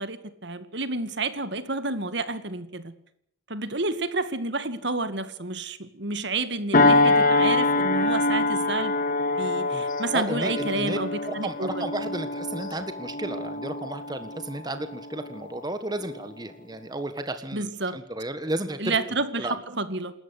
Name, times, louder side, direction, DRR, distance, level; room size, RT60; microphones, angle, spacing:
voice 1, 0.0-2.9 3.5-9.0 9.4-11.9 17.5-18.0 18.8-20.1, right 3 dB, 60° right, 12 dB, 2.1 m, -30 dB
sound 1, 6.7-15.6 16.1-16.3, left 2 dB, 45° left, 1.9 m, -25 dB
voice 2, 10.1-11.0 11.3-18.9 19.4-19.5, right 1 dB, 20° right, 9 dB, 1.6 m, -33 dB
28.5 x 14.0 x 8.3 m, 0.70 s
head